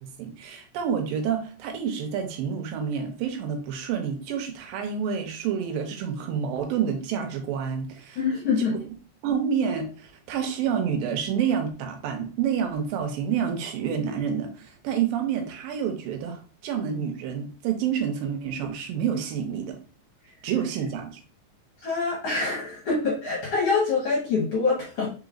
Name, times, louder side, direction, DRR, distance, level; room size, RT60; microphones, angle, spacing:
voice 1, 0.0-8.2 9.2-19.8 20.4-21.2, right 7 dB, 80° right, 4 dB, 2.4 m, -28 dB
voice 2, 8.2-8.8 21.8-25.1, left 4 dB, 60° left, -3 dB, 1.7 m, -25 dB
5.4 x 4.0 x 2.4 m, 0.38 s
omnidirectional pair, 4.2 m